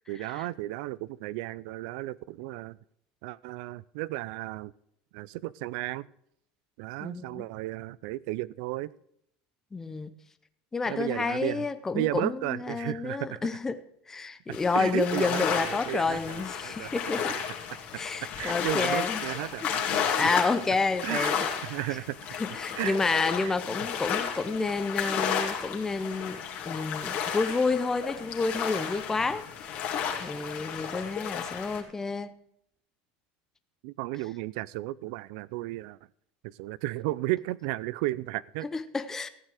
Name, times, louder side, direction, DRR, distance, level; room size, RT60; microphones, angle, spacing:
voice 1, 0.1-2.8 3.2-4.7 5.1-6.1 6.8-8.9 10.9-11.7 11.9-13.4 14.5-16.9 18.4-20.1 21.0-21.4 21.6-22.3 22.8-23.0 23.4-23.6 33.8-36.0 36.4-38.7, right 18 dB, 65° right, 0.4 m, -34 dB
voice 2, 7.0-7.5 9.7-10.1 10.7-13.8 14.1-17.4 17.9-19.2 19.9-21.5 22.3-29.8 30.2-32.3 38.7-39.3, left 4 dB, 10° left, 0.6 m, -30 dB
sound 1, 14.5-31.8, left 7 dB, 40° left, 2.6 m, -33 dB
15.0 x 9.3 x 4.9 m
supercardioid pair, 155°, 4 cm